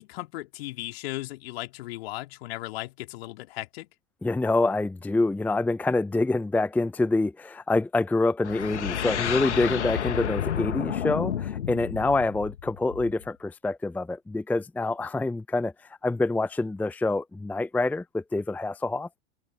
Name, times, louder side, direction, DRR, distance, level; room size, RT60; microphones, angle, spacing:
voice 1, 0.0-3.9, left 18 dB, 55° left, 3.2 m, -36 dB
voice 2, 4.2-15.7 16.0-19.1, left 2 dB, 5° left, 0.7 m, -26 dB
sound 1, 8.4-13.3, left 9 dB, 70° left, 1.8 m, -30 dB
open air
figure-of-eight pair, 90°, 36 cm